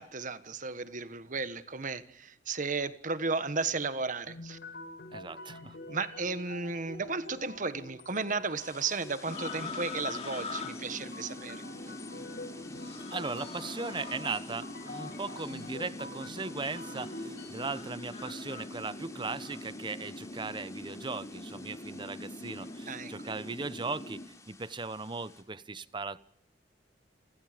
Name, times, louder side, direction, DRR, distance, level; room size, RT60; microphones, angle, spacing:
voice 1, 0.0-4.6 5.9-11.6 22.9-23.1, right 4 dB, 45° right, 1.4 m, -34 dB
sound 1, 4.3-17.5, left 2 dB, 60° left, 7.5 m, -47 dB
voice 2, 5.1-5.8 13.1-26.2, right 3 dB, 25° right, 0.9 m, -38 dB
sound 2, 8.6-25.4, left 4 dB, 15° left, 3.8 m, -53 dB
sound 3, 9.3-24.3, left 2 dB, 35° left, 3.2 m, -42 dB
28.5 x 27.0 x 5.2 m
head